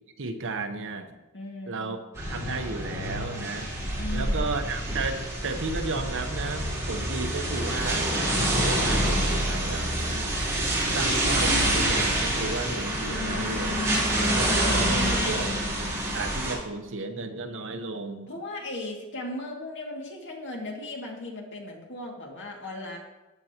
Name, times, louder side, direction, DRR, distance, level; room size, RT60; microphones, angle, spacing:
voice 1, 0.2-1.2 1.7-3.7 4.1-10.3 10.8-13.9 14.3-15.6 16.1-18.3, right 3 dB, 60° right, 7 dB, 0.9 m, -34 dB
voice 2, 1.3-2.0 4.0-4.5 14.9-15.5 18.3-23.0, left 2 dB, 55° left, 0 dB, 2.2 m, -37 dB
sound 1, 2.1-16.5, right 1 dB, 15° right, 3.7 m, -27 dB
14.5 x 9.0 x 2.9 m, 1.1 s
head